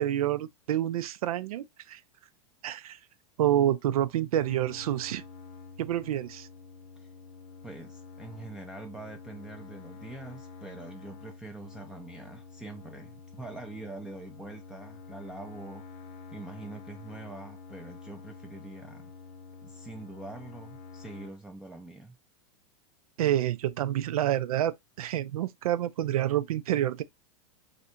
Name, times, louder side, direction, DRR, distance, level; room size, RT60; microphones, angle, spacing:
voice 1, 0.0-2.0 2.6-3.0 3.4-5.2 5.8-6.5 23.2-27.0, right 12 dB, 85° right, 0.4 m, -28 dB
sound 1, 4.4-21.3, left 4 dB, 65° left, 0.7 m, -48 dB
voice 2, 7.6-16.1 16.3-19.1 19.6-22.2, right 2 dB, 5° right, 0.4 m, -44 dB
3.2 x 2.5 x 2.8 m
hypercardioid pair, 110°, 18 cm